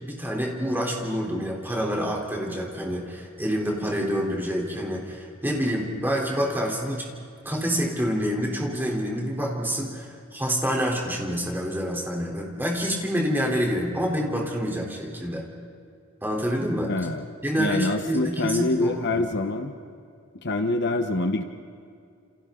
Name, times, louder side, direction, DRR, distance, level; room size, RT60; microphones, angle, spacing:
voice 1, 0.0-7.1 7.4-15.5 16.2-16.9 17.4-19.2, equal, 10° right, -1 dB, 3.8 m, -27 dB
voice 2, 16.9-17.3 17.6-19.7 20.4-21.4, left 2 dB, 55° left, 6 dB, 1.2 m, -25 dB
29.0 x 29.0 x 3.9 m, 2.4 s
head